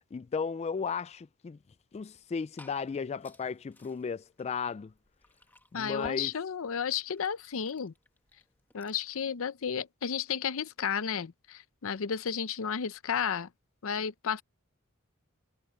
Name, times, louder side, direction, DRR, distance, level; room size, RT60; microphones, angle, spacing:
voice 1, 0.1-1.6 1.9-4.9 5.7-6.3, left 5 dB, 30° left, 0.3 m, -35 dB
Liquid, 2.1-9.2, left 1 dB, 10° left, 1.6 m, -57 dB
voice 2, 5.7-7.9 8.7-13.5 13.8-14.4, left 7 dB, 70° left, 0.6 m, -33 dB
head